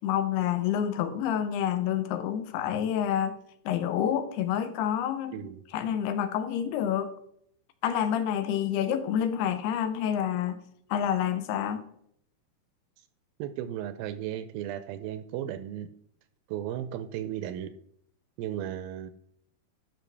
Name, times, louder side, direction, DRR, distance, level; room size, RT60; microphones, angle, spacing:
voice 1, 0.0-3.3 3.7-5.4 5.7-7.1 7.8-10.6 10.9-11.9, left 9 dB, 85° left, 10 dB, 2.8 m, -28 dB
voice 2, 13.4-15.9 16.5-17.7 18.4-19.1, right 11 dB, 85° right, 11 dB, 2.1 m, -35 dB
12.0 x 5.9 x 3.3 m, 0.70 s
omnidirectional pair, 4.5 m